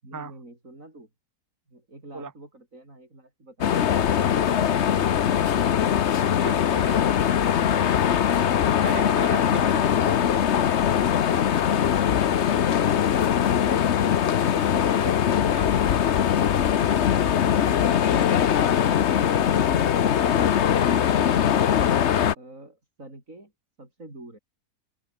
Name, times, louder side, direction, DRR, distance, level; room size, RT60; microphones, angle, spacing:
voice 1, 0.0-1.1 1.7-5.3 14.4-15.1 22.4-23.5 23.8-24.4, right 2 dB, 60° right, 7.2 m, -47 dB
sound 1, 3.6-22.3, left 9 dB, 55° left, 1.1 m, -21 dB
voice 2, 6.4-7.2 8.8-10.6 14.8-15.1 15.5-15.7, right 4 dB, 15° right, 1.0 m, -38 dB
omnidirectional pair, 1.5 m